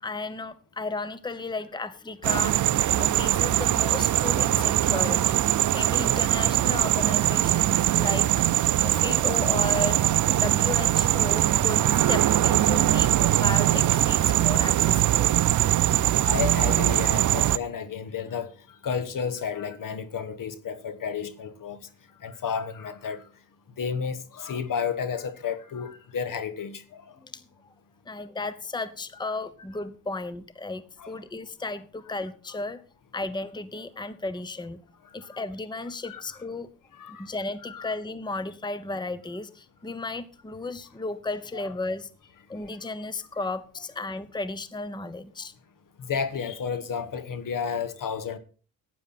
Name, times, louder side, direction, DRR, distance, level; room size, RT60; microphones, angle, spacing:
voice 1, 0.0-2.6 2.9-10.0 10.4-15.4 27.2-27.4 28.1-32.8 33.1-34.8 35.1-36.7 37.1-42.1 42.5-45.5, left 3 dB, 10° left, 0.9 m, -34 dB
sound 1, 2.2-17.6, right 13 dB, 55° right, 0.6 m, -22 dB
voice 2, 16.1-18.5 18.8-21.8 22.2-23.2 23.8-27.0 31.0-31.1 35.2-35.4 36.0-36.2 36.9-37.3 37.7-37.9 41.5-41.7 46.0-48.4, left 7 dB, 60° left, 1.4 m, -32 dB
12.0 x 9.4 x 4.2 m
supercardioid pair, 55°, 37 cm